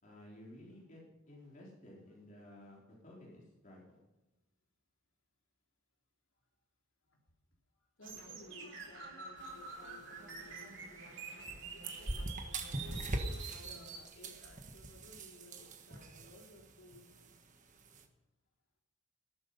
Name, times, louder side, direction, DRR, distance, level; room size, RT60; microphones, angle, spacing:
voice 1, 0.0-2.8 3.0-4.0, left 1 dB, 35° left, -3 dB, 3.9 m, -54 dB
voice 2, 8.0-12.2 12.7-17.1, left 1 dB, 60° left, 0 dB, 3.3 m, -57 dB
sound 1, 8.0-14.0, right 4 dB, 55° right, 3.7 m, -47 dB
sound 2, 9.4-18.1, right 2 dB, 35° right, 1.4 m, -44 dB
13.5 x 12.5 x 5.5 m, 1.0 s
head